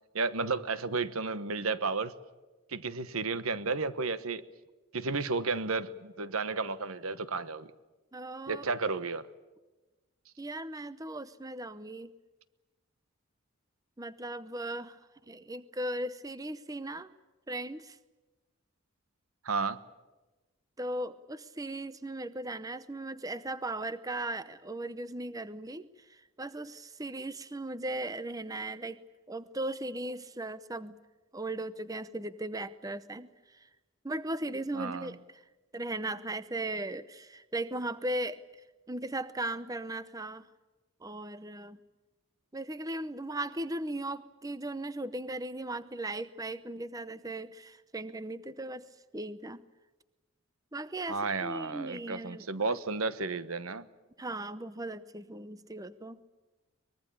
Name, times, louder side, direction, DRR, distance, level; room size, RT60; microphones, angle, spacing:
voice 1, 0.1-2.1 2.7-4.4 4.9-7.7 8.5-9.3 19.4-19.8 34.7-35.1 51.1-53.9, right 4 dB, 85° right, 14 dB, 1.2 m, -32 dB
voice 2, 8.1-8.6 10.4-12.1 14.0-15.0 15.3-17.1 17.5-18.0 20.8-29.0 29.3-30.9 31.3-33.7 34.0-35.4 35.7-38.4 38.9-40.5 41.0-41.8 42.5-48.9 49.1-49.6 50.7-52.8 54.2-56.2, right 1 dB, 15° right, 14 dB, 0.7 m, -37 dB
24.0 x 21.5 x 8.7 m, 1.2 s
head